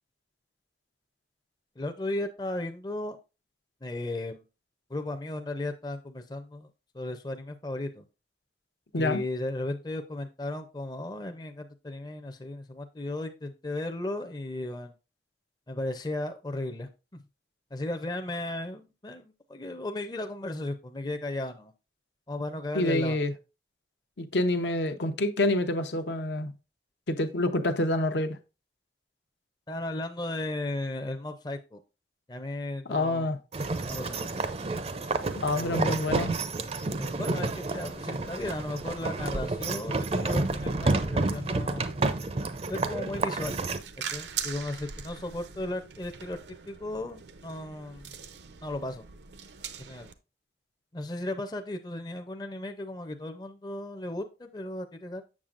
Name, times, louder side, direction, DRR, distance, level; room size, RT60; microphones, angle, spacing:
voice 1, 1.8-3.2 3.8-4.4 4.9-6.7 6.9-8.1 8.9-14.9 15.7-17.2 17.7-21.7 22.3-23.2 29.7-31.8 32.3-33.3 33.9-34.3 35.5-36.1 37.0-41.9 42.7-43.6 44.1-46.4 46.7-48.1 48.6-49.0 49.8-50.1 50.9-55.2, left 1 dB, 25° left, 0.5 m, -35 dB
voice 2, 22.7-23.3 24.2-26.5 27.1-28.4 32.9-33.4 35.4-36.3, left 1 dB, 75° left, 0.7 m, -27 dB
sound 1, 33.5-43.8, right 3 dB, 35° right, 0.5 m, -30 dB
sound 2, 43.3-50.1, right 8 dB, 80° right, 0.6 m, -41 dB
7.4 x 6.9 x 2.5 m
head